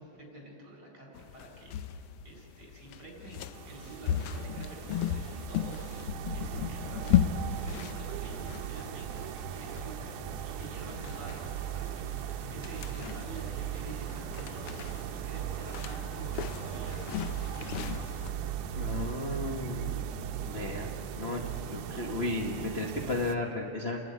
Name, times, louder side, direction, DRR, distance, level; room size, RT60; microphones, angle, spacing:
voice 1, 0.0-1.8 2.2-5.9 6.3-17.2 17.5-18.4, right 2 dB, 30° right, 0 dB, 5.7 m, -48 dB
sound 1, 1.1-18.3, left 10 dB, 90° left, 1.2 m, -36 dB
sound 2, 3.5-23.4, right 9 dB, 85° right, 2.3 m, -38 dB
voice 2, 18.8-20.1 20.4-20.9 21.2-24.0, left 2 dB, 45° left, 0 dB, 0.7 m, -34 dB
29.0 x 12.0 x 9.4 m, 2.5 s
omnidirectional pair, 3.4 m